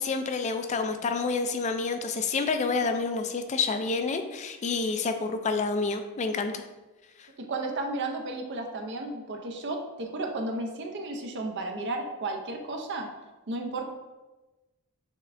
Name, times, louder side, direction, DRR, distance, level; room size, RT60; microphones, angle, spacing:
voice 1, 0.0-6.6 7.2-7.3, left 4 dB, 30° left, 7 dB, 0.3 m, -28 dB
voice 2, 7.5-13.1 13.5-13.9, right 2 dB, 50° right, 3 dB, 0.6 m, -33 dB
6.3 x 3.2 x 2.5 m, 1.1 s
head